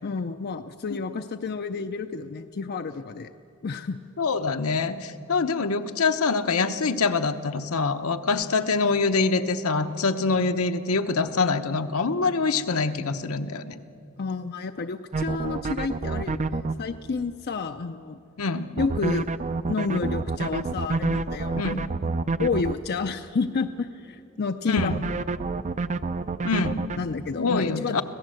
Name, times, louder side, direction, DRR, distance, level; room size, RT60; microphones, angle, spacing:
voice 1, 0.0-3.3 3.6-4.0 14.2-18.2 18.8-19.3 19.7-21.9 22.4-24.9 27.0-28.0, left 4 dB, 45° left, 8 dB, 0.5 m, -30 dB
voice 2, 4.2-13.7 18.4-18.7 21.6-21.9 24.7-25.0 26.4-26.8 27.4-28.0, left 4 dB, 75° left, 8 dB, 1.0 m, -25 dB
sound 1, 15.1-16.7 18.8-22.7 24.8-27.0, right 3 dB, 35° right, 0.5 m, -28 dB
25.5 x 16.5 x 7.7 m, 2.7 s
head